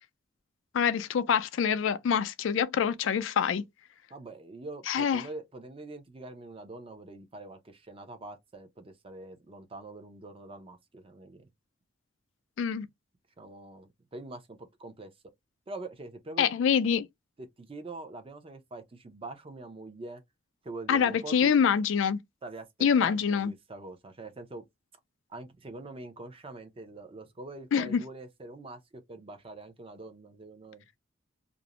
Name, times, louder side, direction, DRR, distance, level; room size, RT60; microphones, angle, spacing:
voice 1, 0.7-3.7 4.9-5.3 12.6-12.9 16.4-17.1 20.9-22.2 22.8-23.5 27.7-28.0, left 7 dB, 90° left, 0.3 m, -25 dB
voice 2, 4.1-11.5 13.4-15.1 15.7-16.5 17.4-20.2 20.6-21.6 22.4-22.7 23.0-24.6 25.3-30.8, right 2 dB, 30° right, 0.5 m, -44 dB
2.5 x 2.0 x 2.8 m
head